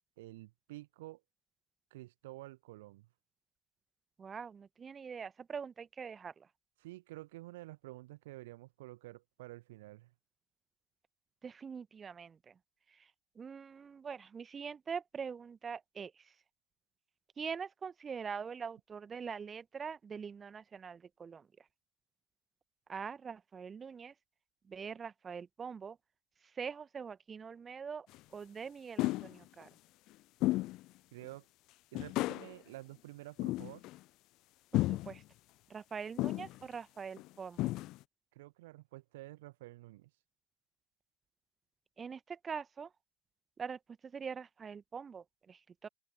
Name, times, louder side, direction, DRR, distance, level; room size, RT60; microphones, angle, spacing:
voice 1, 0.2-1.2 1.9-3.1 6.8-10.1 31.1-31.5 31.9-33.8 38.3-40.1, right 18 dB, 50° right, 1.1 m, -50 dB
voice 2, 4.2-6.5 11.4-12.5 13.0-13.1 13.3-16.1 17.4-21.5 22.9-24.1 24.7-26.0 26.5-28.1 28.3-29.7 34.7-35.2 35.7-37.7 42.0-42.9 43.6-45.9, right 6 dB, 20° right, 1.5 m, -43 dB
sound 1, 28.1-28.2 29.0-29.4 30.4-30.8 31.2-31.3 31.9-32.5 33.4-34.0 34.7-35.2 36.2-36.6 37.2-37.3 37.6-38.0, left 18 dB, 40° left, 0.5 m, -33 dB
open air
figure-of-eight pair, 90°, 0 cm